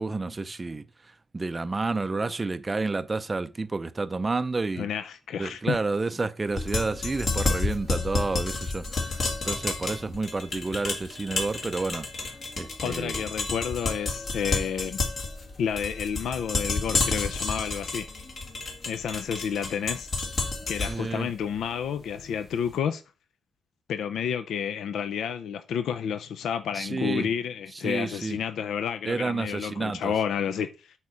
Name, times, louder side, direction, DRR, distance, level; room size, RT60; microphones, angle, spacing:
voice 1, 0.0-4.9 5.4-12.1 12.6-13.2 20.9-21.3 26.7-27.3 27.7-28.4 29.0-30.1, right 3 dB, 20° right, 0.5 m, -30 dB
voice 2, 4.8-5.8 12.8-15.0 15.6-18.1 18.9-20.1 20.7-23.0 23.9-30.7, left 8 dB, 75° left, 0.5 m, -30 dB
sound 1, 6.5-22.5, left 3 dB, 40° left, 1.7 m, -31 dB
8.2 x 4.3 x 4.9 m
cardioid pair, 150°, 0 cm